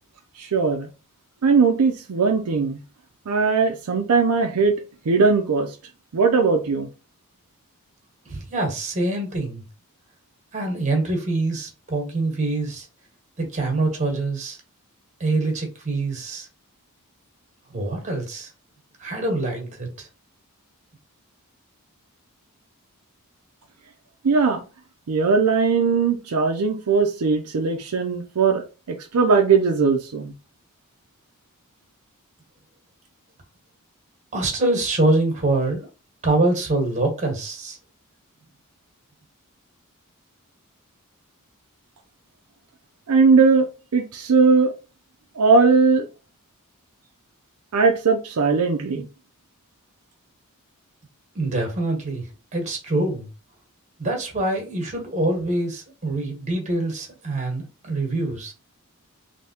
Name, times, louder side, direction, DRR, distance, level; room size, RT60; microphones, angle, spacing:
voice 1, 0.4-0.9 1.4-2.8 3.3-4.8 5.1-5.8 6.1-6.9 24.2-24.6 25.1-30.3 43.1-43.7 43.9-44.7 45.4-46.1 47.7-49.0, right 4 dB, 75° right, 0.5 m, -19 dB
voice 2, 8.2-9.6 10.5-12.9 13.4-14.6 15.2-16.5 17.7-18.5 19.0-20.1 34.3-35.9 36.2-37.8 51.3-52.2 52.5-53.3 54.0-58.5, right 2 dB, 35° right, 1.3 m, -25 dB
3.4 x 2.8 x 2.8 m
head